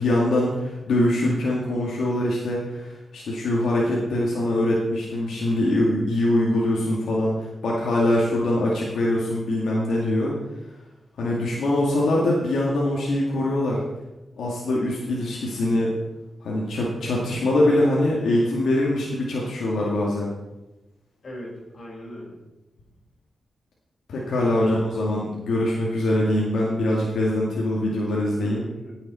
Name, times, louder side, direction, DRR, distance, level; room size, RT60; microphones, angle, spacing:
voice 1, 0.0-7.4 7.6-10.3 11.2-13.8 14.4-15.9 16.4-20.3 24.1-28.6, left 1 dB, 90° left, -4 dB, 2.1 m, -23 dB
voice 2, 21.2-22.4 24.5-24.9 28.4-29.0, equal, 55° left, -2 dB, 4.4 m, -39 dB
16.5 x 7.4 x 4.3 m, 1.0 s
cardioid pair, 90°, 0 cm